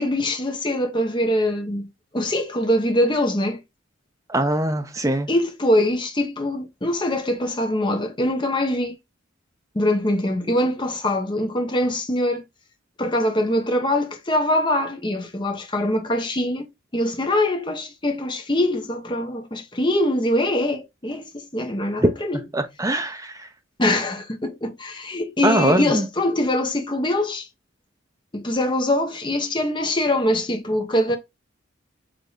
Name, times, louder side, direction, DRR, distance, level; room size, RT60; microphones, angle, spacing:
voice 1, 0.0-3.6 5.3-8.9 9.7-12.4 13.0-22.4 23.8-27.5 28.3-31.2, left 1 dB, 25° left, 0.8 m, -23 dB
voice 2, 4.3-5.3 22.5-23.4 25.4-26.0, right 1 dB, 15° right, 0.6 m, -22 dB
5.1 x 2.8 x 3.8 m
head